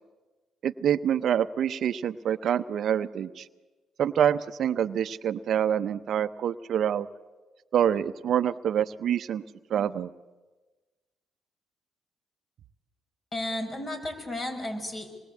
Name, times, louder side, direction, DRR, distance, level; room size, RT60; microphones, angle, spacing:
voice 1, 0.6-3.5 4.0-7.1 7.7-9.4 9.7-10.1, right 9 dB, 65° right, 13 dB, 0.8 m, -26 dB
voice 2, 13.3-15.1, left 1 dB, 35° left, 4 dB, 6.5 m, -33 dB
26.5 x 22.0 x 8.5 m, 1.2 s
supercardioid pair, 60°, 0 cm